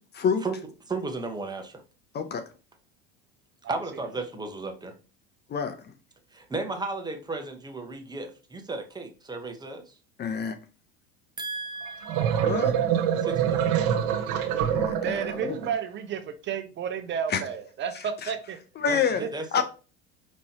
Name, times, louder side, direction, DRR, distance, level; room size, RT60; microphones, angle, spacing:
voice 1, 0.1-0.4 2.1-2.5 5.5-5.8 10.2-10.6 12.4-12.7 14.7-15.6 17.3-17.4 18.2-18.3 18.8-19.2 19.5-19.6, left 7 dB, 35° left, 0.7 m, -27 dB
voice 2, 0.9-1.8 3.7-4.9 6.3-9.9 11.4-12.6 13.2-13.7 18.9-19.6, right 3 dB, 15° right, 0.9 m, -35 dB
sound 1, 11.9-15.7, right 9 dB, 65° right, 0.8 m, -25 dB
voice 3, 15.0-18.6 19.2-19.3, right 7 dB, 35° right, 0.6 m, -32 dB
5.3 x 3.1 x 2.8 m
hypercardioid pair, 90°, 31 cm